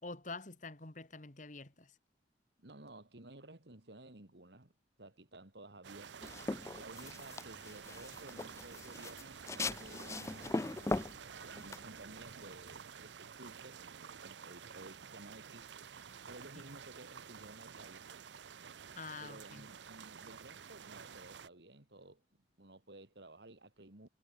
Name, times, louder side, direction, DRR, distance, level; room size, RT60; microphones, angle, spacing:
voice 1, 0.0-2.0 18.9-19.7, left 3 dB, 45° left, 2.0 m, -47 dB
voice 2, 2.6-4.7 5.0-6.4 6.7-13.9 14.2-15.7 16.3-18.1 19.2-22.2 22.6-24.1, right 2 dB, 70° right, 2.5 m, -55 dB
sound 1, 5.8-21.5, right 7 dB, 90° right, 0.7 m, -51 dB
sound 2, 6.2-12.7, left 2 dB, 15° left, 0.4 m, -40 dB
head